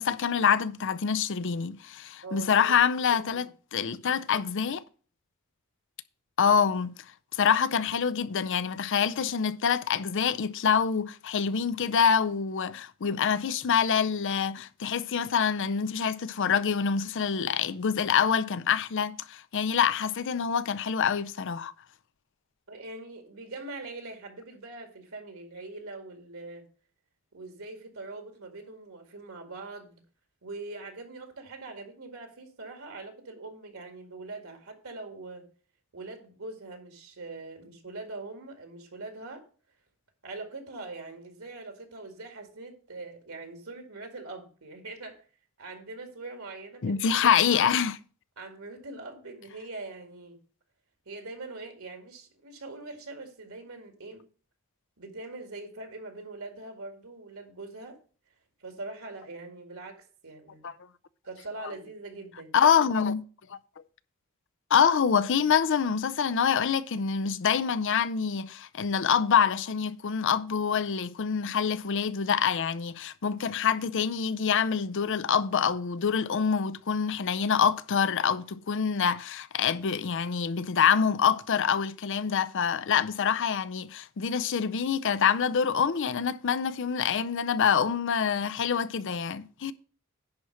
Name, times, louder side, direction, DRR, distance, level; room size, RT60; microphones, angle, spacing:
voice 1, 0.0-4.8 6.4-6.9 7.3-21.7 46.8-48.0 60.6-60.7 62.5-63.2 63.5-63.6 64.7-89.7, left 7 dB, 60° left, 0.5 m, -26 dB
voice 2, 2.2-2.8 3.1-3.4 22.7-26.6 27.3-30.0 30.4-35.4 35.9-39.4 40.2-45.3 45.6-47.2 47.5-47.7 48.4-50.4 51.1-54.3 55.0-58.0 58.6-60.6 61.2-62.6, right 3 dB, 70° right, 2.0 m, -42 dB
10.5 x 4.3 x 6.3 m
head